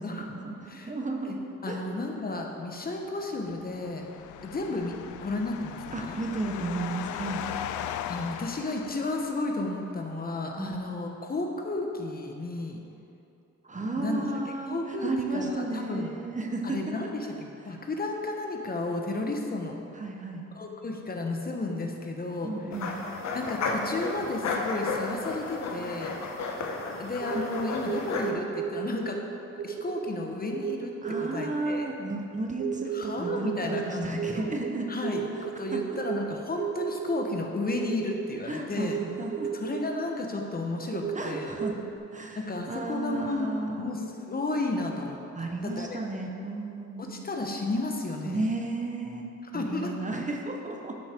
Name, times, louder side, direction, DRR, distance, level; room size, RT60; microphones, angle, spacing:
voice 1, 0.0-1.4 1.7-1.8 5.9-7.4 10.6-10.8 13.6-16.9 19.9-20.5 22.4-22.9 31.0-34.9 35.7-36.0 38.5-39.5 41.1-41.8 42.1-42.4 42.7-43.9 45.3-47.1 48.2-50.9, right 2 dB, 25° right, 2 dB, 1.0 m, -33 dB
voice 2, 1.6-4.0 4.4-6.2 8.1-12.8 14.0-14.2 14.7-16.1 16.6-19.8 20.5-22.5 23.3-26.2 27.0-29.2 29.6-30.9 31.2-31.9 32.9-34.5 34.9-39.0 39.5-41.5 42.3-43.5 43.8-46.0 47.0-48.5 49.4-50.1, left 2 dB, 30° left, 2 dB, 1.1 m, -33 dB
sound 1, 3.3-9.7, left 10 dB, 80° left, 0.5 m, -38 dB
sound 2, 22.7-28.3, left 3 dB, 65° left, 1.1 m, -33 dB
sound 3, 27.2-29.2 29.6-30.1 30.5-31.5 32.6-33.9 34.2-36.2 36.5-37.2 37.7-38.2 38.8-39.8 40.4-42.0, right 8 dB, 50° right, 0.6 m, -33 dB
11.5 x 5.6 x 4.5 m, 2.8 s
cardioid pair, 90°, 30 cm